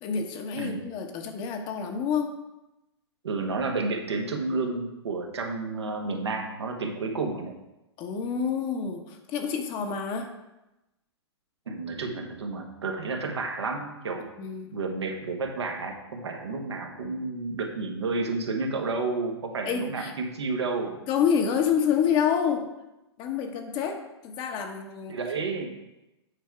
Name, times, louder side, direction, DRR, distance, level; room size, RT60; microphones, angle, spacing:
voice 1, 0.0-2.3 8.0-10.3 14.4-14.7 19.6-20.1 21.1-22.7 23.2-25.2, left 7 dB, 35° left, 4 dB, 1.1 m, -28 dB
voice 2, 3.2-7.5 11.7-14.3 14.7-20.9 25.1-25.7, right 3 dB, 75° right, 2 dB, 1.4 m, -31 dB
8.4 x 4.6 x 4.6 m, 0.96 s
figure-of-eight pair, 110°, 14 cm